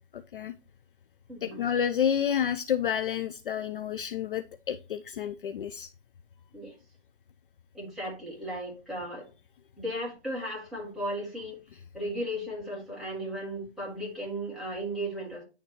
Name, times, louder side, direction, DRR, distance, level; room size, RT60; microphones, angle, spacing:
voice 1, 0.1-0.5 1.4-5.9, left 8 dB, 50° left, 9 dB, 0.5 m, -30 dB
voice 2, 1.3-1.6 6.5-6.8 7.7-9.3 9.8-15.4, equal, ahead, -6 dB, 1.7 m, -36 dB
10.0 x 3.6 x 3.0 m, 0.31 s
hypercardioid pair, 155°, 34 cm